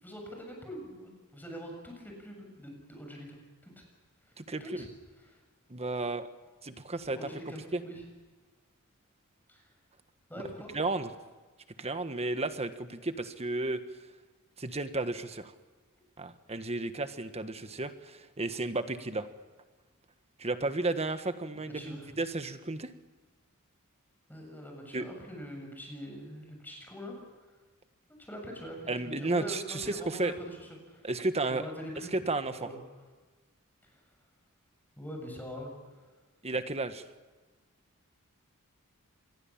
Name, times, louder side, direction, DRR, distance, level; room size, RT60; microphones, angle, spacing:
voice 1, 0.0-3.8 4.2-4.3 4.6-4.9 5.2-5.4 7.1-8.0 9.5-9.6 10.3-10.7 21.5-22.2 24.3-27.2 28.1-31.1 31.5-32.2 32.6-32.8 33.8-34.0 35.0-35.7, equal, 10° left, 1 dB, 7.1 m, -43 dB
voice 2, 5.7-6.3 6.6-7.2 7.7-7.8 10.7-11.1 11.8-13.8 14.6-15.5 16.2-19.3 20.4-22.9 24.9-25.0 28.9-30.3 31.0-31.7 32.1-32.7 36.4-37.0, right 2 dB, 30° right, 10 dB, 1.4 m, -33 dB
27.0 x 22.0 x 7.4 m, 1.3 s
head